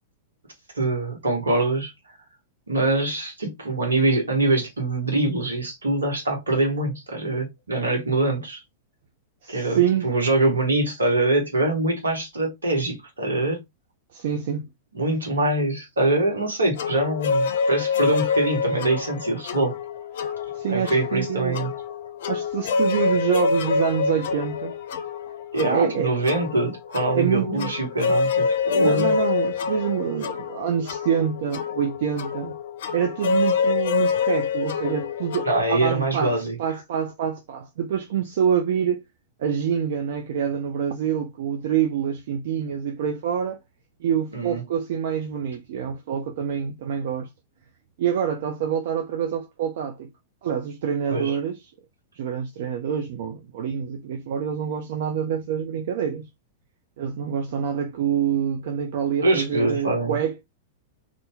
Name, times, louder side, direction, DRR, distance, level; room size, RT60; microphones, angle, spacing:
voice 1, 0.7-1.9 2.7-8.6 9.5-13.6 14.9-19.8 20.7-21.7 25.5-29.1 35.4-36.5 44.3-44.6 51.1-51.4 59.2-60.2, right 2 dB, 85° right, 1.3 m, -24 dB
voice 2, 9.4-10.2 14.1-14.7 20.5-21.6 22.3-24.8 25.5-26.1 27.1-27.7 28.8-32.5 32.9-39.0 39.4-43.6 44.0-47.3 48.0-50.1 50.4-51.6 52.1-56.3 57.0-60.4, right 8 dB, 60° right, 0.4 m, -26 dB
sound 1, 16.8-35.6, left 5 dB, 60° left, 0.5 m, -26 dB
2.7 x 2.5 x 3.4 m
figure-of-eight pair, 100°, 0 cm